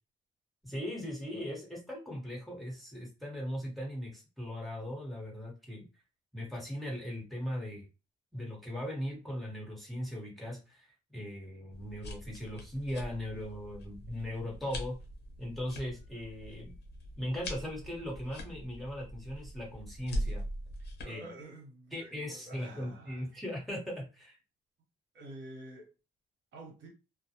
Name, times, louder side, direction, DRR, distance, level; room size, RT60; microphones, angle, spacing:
voice 1, 0.6-5.8 6.3-7.9 8.3-15.0 15.4-16.7 17.2-20.4 21.0-21.2 21.9-24.4, equal, ahead, 1.1 m, -39 dB
sound 1, 11.7-21.0, equal, 60° left, 0.9 m, -42 dB
voice 2, 21.0-23.3 25.1-25.9 26.5-26.9, right 1 dB, 65° right, 1.0 m, -48 dB
2.2 x 2.0 x 2.8 m
cardioid pair, 90°, 20 cm